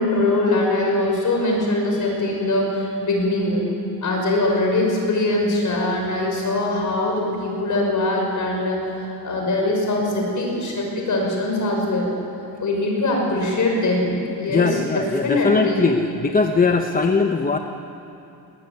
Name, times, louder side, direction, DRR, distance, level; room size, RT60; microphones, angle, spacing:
voice 1, 0.0-3.6 4.0-12.1 12.6-15.8, left 2 dB, 45° left, 0 dB, 6.1 m, -22 dB
voice 2, 14.5-17.6, left 4 dB, 20° left, 4 dB, 0.8 m, -20 dB
20.0 x 20.0 x 9.7 m, 2.8 s
cardioid pair, 160°, 42 cm